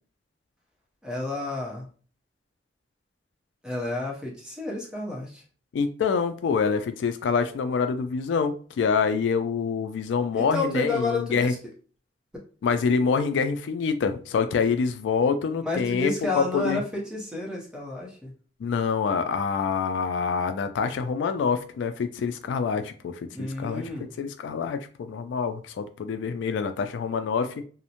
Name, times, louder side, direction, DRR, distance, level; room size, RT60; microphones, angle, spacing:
voice 1, 1.0-1.9 3.6-5.4 10.3-11.6 15.6-18.3 23.3-24.1, left 2 dB, 5° right, -3 dB, 0.7 m, -30 dB
voice 2, 5.7-11.5 12.6-16.1 16.4-16.8 18.6-23.8 24.2-27.6, left 5 dB, 80° left, 9 dB, 0.3 m, -26 dB
2.5 x 2.0 x 2.8 m, 0.40 s
head